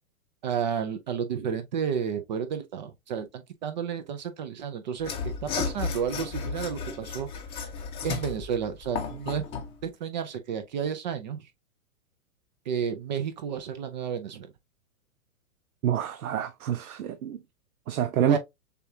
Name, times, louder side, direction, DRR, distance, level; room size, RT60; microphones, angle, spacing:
voice 1, 0.4-7.3 7.6-7.7 8.0-9.5 9.8-11.4 12.7-14.5 18.3-18.4, right 7 dB, 35° right, 0.5 m, -31 dB
Mechanisms / Sawing, 5.0-9.7, left 5 dB, 15° left, 0.7 m, -33 dB
voice 2, 15.8-17.4 17.9-18.4, right 10 dB, 75° right, 0.8 m, -27 dB
6.7 x 2.4 x 2.7 m
hypercardioid pair, 145°, 43 cm